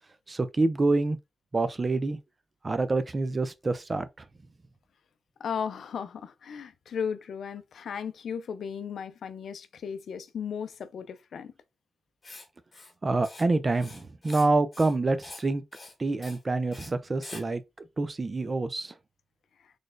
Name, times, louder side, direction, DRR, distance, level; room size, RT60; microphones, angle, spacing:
voice 1, 0.3-1.2 1.5-2.2 2.6-4.1 13.0-15.6 16.0-17.6 18.0-18.9, right 3 dB, 25° right, 0.4 m, -27 dB
voice 2, 5.4-11.5, left 7 dB, 75° left, 0.4 m, -35 dB
Writing, 12.2-12.4 12.7-12.9 13.2-13.4 13.7-14.5 14.7-15.0 15.2-15.4 15.7-15.9 16.2-16.4 16.7-16.9 17.2-17.4, left 2 dB, 25° left, 1.9 m, -45 dB
4.1 x 3.2 x 2.5 m
wide cardioid pair, 145°, 0 cm